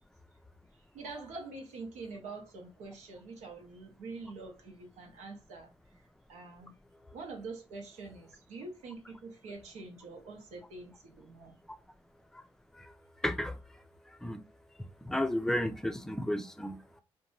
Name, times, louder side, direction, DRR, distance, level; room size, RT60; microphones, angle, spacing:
voice 1, 0.9-5.7 6.3-6.7 7.1-11.5, right 3 dB, 90° right, 0.7 m, -45 dB
voice 2, 13.2-13.6 14.2-14.4 15.0-17.0, left 1 dB, 5° left, 0.4 m, -33 dB
2.6 x 2.2 x 3.0 m
supercardioid pair, 60°, 12 cm